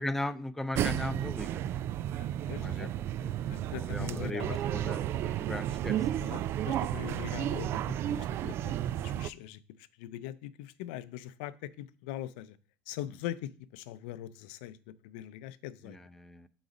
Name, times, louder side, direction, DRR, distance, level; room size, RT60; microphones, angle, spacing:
voice 1, 0.0-1.7 2.5-2.9 3.9-6.0 15.9-16.5, left 1 dB, 5° left, 0.5 m, -37 dB
sound 1, 0.7-9.3, right 11 dB, 50° right, 0.3 m, -32 dB
voice 2, 2.5-2.9 3.5-4.6 5.9-12.6 12.9-16.0, left 13 dB, 80° left, 0.5 m, -42 dB
7.9 x 4.0 x 5.1 m
supercardioid pair, 110°, 5 cm